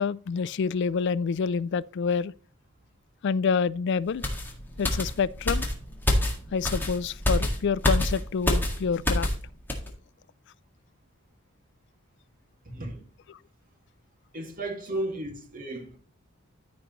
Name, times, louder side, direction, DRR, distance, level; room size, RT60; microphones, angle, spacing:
voice 1, 0.0-2.3 3.2-4.2 4.8-5.6 6.5-9.3 13.3-13.4, left 5 dB, 55° left, 0.4 m, -27 dB
sound 1, 4.2-9.4 9.7-9.9, left 1 dB, 10° left, 1.7 m, -27 dB
voice 2, 12.7-13.0 14.3-16.0, right 1 dB, 40° right, 2.0 m, -34 dB
14.0 x 5.2 x 3.0 m
head